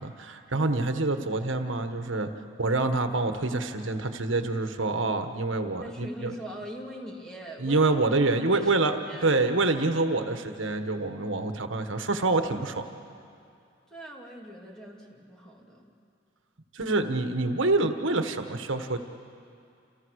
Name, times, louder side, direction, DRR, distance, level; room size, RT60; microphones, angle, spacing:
voice 1, 0.0-2.3 2.6-6.3 7.6-12.8 16.7-19.0, right 2 dB, 75° right, 7 dB, 1.4 m, -26 dB
voice 2, 5.8-8.0 8.5-8.7 9.1-9.4 13.9-15.9, right 1 dB, 5° left, -2 dB, 2.6 m, -42 dB
29.0 x 28.5 x 6.5 m, 2.4 s
head